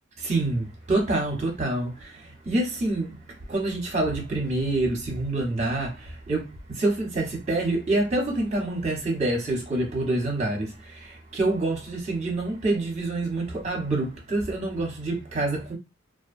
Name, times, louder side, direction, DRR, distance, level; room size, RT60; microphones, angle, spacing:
voice 1, 0.2-3.1 3.5-15.7, right 2 dB, 35° right, 0.9 m, -27 dB
2.4 x 2.2 x 2.5 m
head